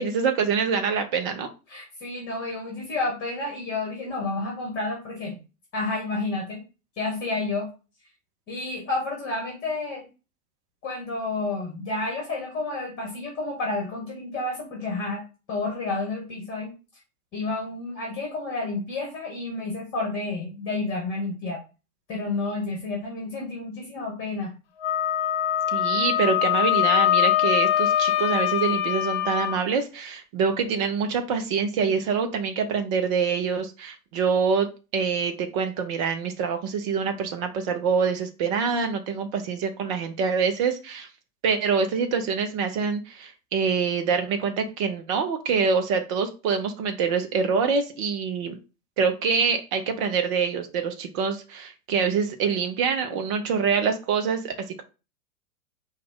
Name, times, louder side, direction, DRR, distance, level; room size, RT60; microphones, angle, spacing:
voice 1, 0.0-1.5 25.7-41.1 41.4-48.6 49.0-54.8, right 5 dB, 20° right, 7 dB, 0.5 m, -25 dB
voice 2, 1.7-5.4 5.7-6.6 7.0-7.7 8.5-10.0 10.8-15.2 15.5-16.7 17.3-21.6 22.1-24.5, left 3 dB, 30° left, 0 dB, 1.5 m, -30 dB
Wind instrument woodwind instrument, 24.8-29.6, left 12 dB, 45° left, 0.5 m, -23 dB
4.7 x 2.4 x 3.6 m, 0.31 s
figure-of-eight pair, 105°, 45 cm